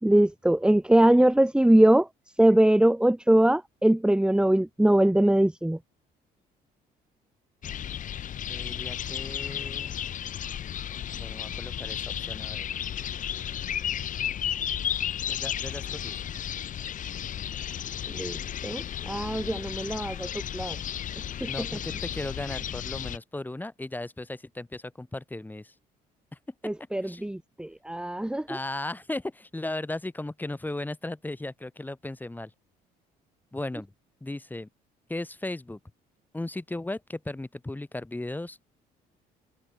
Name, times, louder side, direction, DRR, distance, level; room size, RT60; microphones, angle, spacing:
voice 1, 0.0-5.8 18.1-20.8 21.1-21.8 26.6-28.6, right 1 dB, 5° right, 4.4 m, -22 dB
sound 1, 7.6-23.2, left 10 dB, 50° left, 1.6 m, -33 dB
voice 2, 8.5-9.9 11.1-12.7 15.3-16.2 21.5-25.7 27.0-27.3 28.5-32.5 33.5-33.9 34.2-34.7 35.1-35.8 36.3-38.7, left 2 dB, 10° left, 7.3 m, -36 dB
cardioid pair, 110°, 17 cm